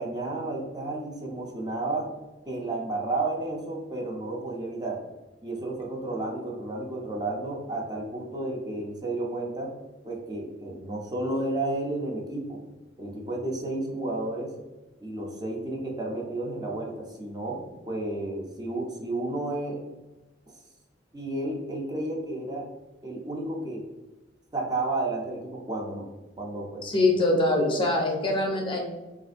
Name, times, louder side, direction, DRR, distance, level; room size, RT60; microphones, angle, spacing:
voice 1, 0.0-2.1 2.5-5.0 5.4-9.7 10.0-12.6 13.0-14.5 15.0-19.8 21.1-22.7 23.0-23.8 24.5-26.1 26.4-26.9, right 2 dB, 25° right, -1 dB, 0.5 m, -32 dB
voice 2, 26.8-28.8, left 2 dB, 30° left, 0 dB, 0.5 m, -23 dB
3.5 x 2.5 x 2.4 m, 1.1 s
head